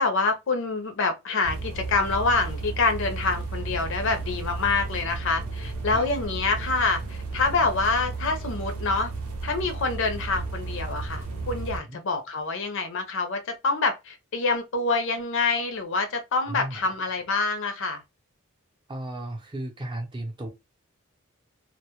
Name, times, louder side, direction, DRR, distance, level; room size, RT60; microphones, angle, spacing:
voice 1, 0.0-9.1 9.4-18.0, left 3 dB, 60° left, 0.5 m, -26 dB
sound 1, 1.4-11.8, right 3 dB, 80° right, 0.6 m, -33 dB
voice 2, 16.5-16.8 18.9-20.5, right 1 dB, 20° right, 0.6 m, -35 dB
2.1 x 2.0 x 2.9 m
head